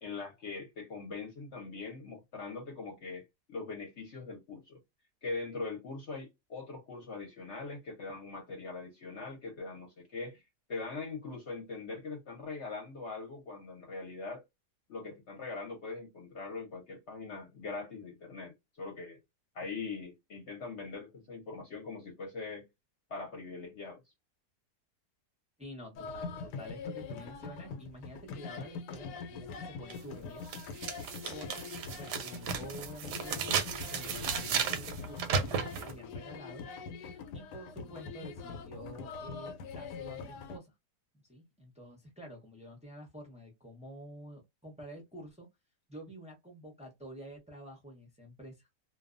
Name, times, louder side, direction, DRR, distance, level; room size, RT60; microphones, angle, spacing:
voice 1, 0.0-4.8 5.2-10.4 10.7-14.4 14.9-19.2 19.5-22.7 23.1-24.0, left 4 dB, 55° left, 0.9 m, -42 dB
voice 2, 25.6-30.4 31.3-36.7 37.3-40.7 41.1-45.5 45.9-48.7, equal, 10° right, 0.3 m, -49 dB
sound 1, 25.9-40.6, left 5 dB, 90° left, 1.2 m, -43 dB
sound 2, 29.9-30.0 30.5-35.9, right 6 dB, 90° right, 1.2 m, -34 dB
2.6 x 2.2 x 2.4 m
omnidirectional pair, 1.7 m